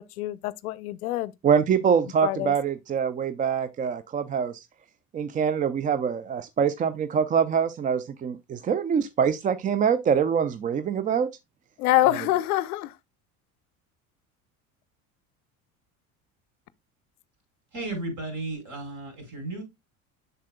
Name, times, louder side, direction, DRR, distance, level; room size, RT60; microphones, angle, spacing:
voice 1, 0.2-1.3 2.2-2.5 11.8-12.9, left 16 dB, 85° left, 0.6 m, -25 dB
voice 2, 1.4-4.6 5.1-11.3, right 7 dB, 20° right, 0.3 m, -24 dB
voice 3, 17.7-19.6, right 2 dB, 45° right, 4.9 m, -34 dB
7.2 x 6.8 x 2.2 m
hypercardioid pair, 70°, 43 cm